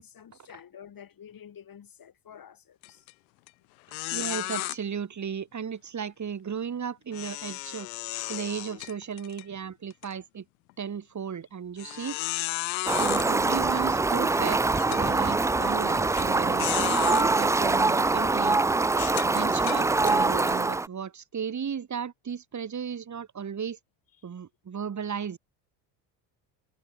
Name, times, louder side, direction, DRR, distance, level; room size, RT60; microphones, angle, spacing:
voice 1, 0.0-3.0, left 8 dB, 40° left, 6.8 m, -49 dB
sound 1, 2.8-3.1 3.5-3.6 3.9-4.8 7.1-9.4 9.9-10.1 10.7-10.8 11.8-13.3 14.1-14.2 14.8-15.0 16.1-16.2 16.6-17.3 17.9-18.1 18.9-20.2, left 25 dB, 80° left, 3.2 m, -33 dB
voice 2, 4.1-7.9 8.3-10.5 10.8-12.2 13.0-14.6 14.9-18.6 19.2-23.8 24.2-25.4, right 7 dB, 35° right, 3.8 m, -35 dB
Fowl, 12.9-20.9, right 3 dB, 5° right, 0.4 m, -24 dB
hypercardioid pair, 75°, 50 cm